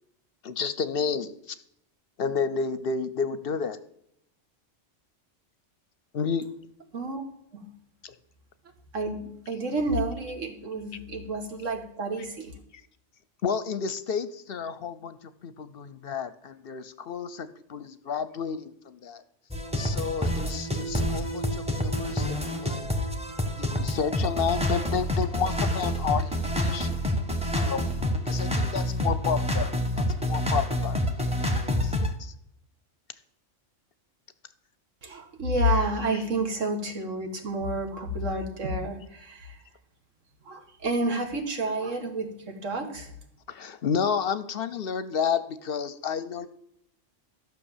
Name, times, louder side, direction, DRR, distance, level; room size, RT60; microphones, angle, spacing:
voice 1, 0.4-1.3 2.2-3.8 6.1-6.5 8.0-8.1 13.4-15.2 15.4-19.2 19.8-22.9 23.6-26.9 27.5-29.7 30.0-32.3 35.6-35.7 36.1-36.2 43.5-46.5, left 6 dB, 60° left, 14 dB, 0.8 m, -31 dB
voice 2, 8.9-12.5 35.0-39.6 40.5-43.1, right 1 dB, 90° right, 3 dB, 2.1 m, -30 dB
sound 1, 19.5-32.1, left 1 dB, 5° right, 1.2 m, -27 dB
13.0 x 6.0 x 7.2 m, 0.75 s
omnidirectional pair, 1.3 m